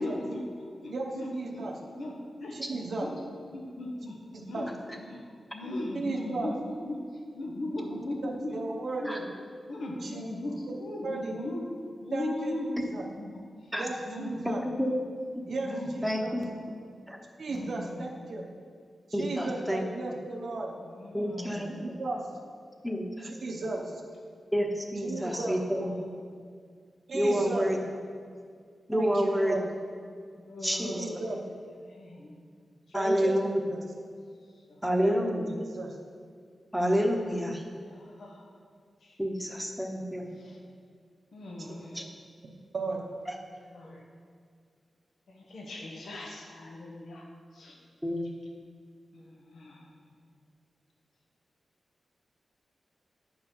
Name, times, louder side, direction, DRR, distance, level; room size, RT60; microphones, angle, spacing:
voice 1, 0.0-1.7 2.0-2.1 2.4-3.1 3.5-4.2 4.4-4.7 5.1-5.2 5.5-7.0 7.3-8.7 9.0-9.1 9.7-11.7 12.0-13.4 14.0-14.5 14.7-14.9 15.6-16.5 17.4-18.0 20.9-22.0 25.1-25.6 30.4-31.3 31.8-32.4 34.7-34.8 37.2-38.4 39.0-39.2 40.4-40.6 41.3-42.0 43.6-44.0 45.3-47.2 47.5-47.8 49.1-49.9, left 1 dB, 80° left, 0 dB, 1.2 m, -38 dB
voice 2, 0.9-1.8 2.5-3.1 4.3-4.7 5.9-6.5 8.2-9.2 10.0-10.2 11.0-11.4 12.1-13.1 13.8-14.6 15.5-16.4 17.4-18.4 19.1-20.7 21.7-22.2 23.2-24.0 25.0-25.6 27.1-27.7 28.9-29.7 30.8-31.4 32.9-33.8 35.0-36.0 41.6-41.8 42.7-43.0, right 2 dB, 70° right, -1 dB, 0.9 m, -35 dB
voice 3, 14.4-14.9 16.0-16.5 17.1-17.2 19.1-19.8 21.1-22.0 22.8-23.3 24.5-25.9 27.1-27.8 28.9-29.6 30.6-31.0 32.9-33.5 34.8-35.5 36.7-37.6 39.2-40.3 41.9-42.0 43.3-43.4 48.0-48.2, equal, ahead, 2 dB, 1.0 m, -28 dB
9.9 x 4.7 x 5.5 m, 2.1 s
wide cardioid pair, 110°, 0 cm